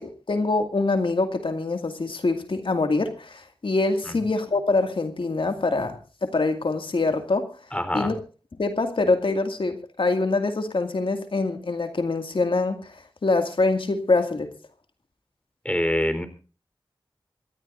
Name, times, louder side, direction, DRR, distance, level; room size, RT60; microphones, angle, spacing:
voice 1, 0.0-7.5 7.9-8.2 8.6-14.5, left 3 dB, 75° left, 6 dB, 2.2 m, -24 dB
voice 2, 7.7-8.1 15.6-16.3, left 1 dB, 15° left, 9 dB, 3.9 m, -25 dB
27.0 x 13.0 x 2.6 m, 0.37 s
wide cardioid pair, 50°, 9 cm